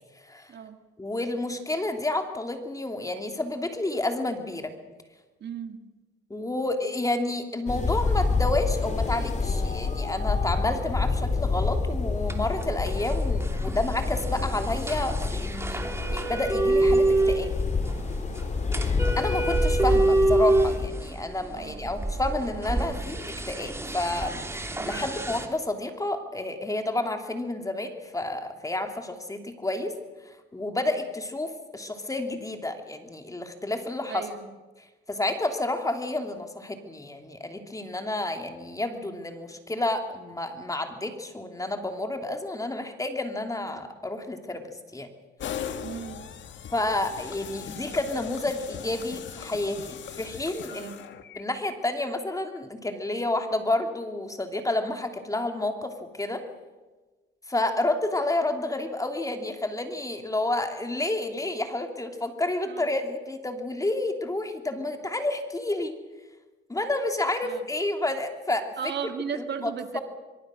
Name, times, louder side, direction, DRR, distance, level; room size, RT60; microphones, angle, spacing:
voice 1, 1.0-4.7 6.3-17.6 19.2-29.9 30.2-34.3 35.1-44.6 44.9-45.1 46.7-50.9 51.4-56.4 57.5-66.0 66.7-68.9 69.3-70.0, left 2 dB, 15° left, 5 dB, 3.0 m, -30 dB
voice 2, 5.4-5.8 21.6-21.9 24.8-25.0 34.1-34.5 45.8-46.2 50.7-51.0 62.7-62.9 67.4-67.6 68.8-70.0, right 7 dB, 60° right, 7 dB, 2.1 m, -36 dB
sound 1, 7.7-20.9, left 4 dB, 35° left, 3.0 m, -28 dB
sound 2, 12.3-25.5, right 2 dB, 15° right, 2.8 m, -27 dB
sound 3, 45.4-51.4, left 8 dB, 70° left, 1.7 m, -39 dB
23.0 x 23.0 x 6.4 m, 1.2 s
cardioid pair, 90°, 20 cm